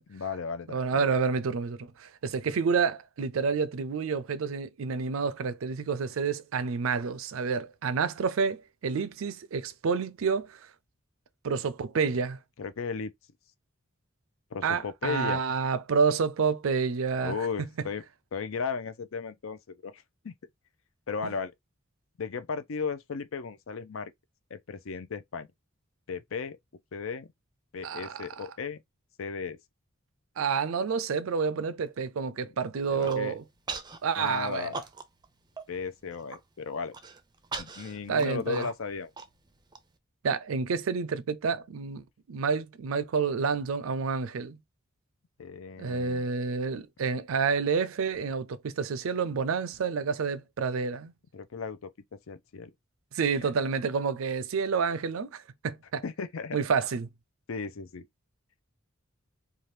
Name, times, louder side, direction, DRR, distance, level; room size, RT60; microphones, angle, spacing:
voice 1, 0.1-1.1 12.6-13.1 14.5-15.4 17.2-18.0 18.3-20.3 21.1-21.5 22.2-24.1 24.5-25.5 26.1-26.6 26.9-27.3 27.7-28.8 29.2-29.6 32.9-33.3 34.2-34.8 35.7-37.0 37.6-39.1 45.4-46.3 51.3-51.9 52.3-52.7 53.4-53.5 56.0-56.6 57.5-58.1, left 5 dB, 75° left, 0.5 m, -35 dB
voice 2, 0.7-10.6 11.4-12.4 14.6-17.9 27.8-28.3 30.4-33.4 34.0-34.7 38.1-38.7 40.2-44.6 45.8-51.1 53.1-56.0 56.5-57.1, right 5 dB, 80° right, 0.4 m, -29 dB
Human voice, 32.8-33.2 33.7-34.0 34.3-35.3 35.6-35.7 36.0-36.4 36.9-39.8, right 4 dB, 20° right, 0.4 m, -39 dB
2.7 x 2.4 x 3.2 m
head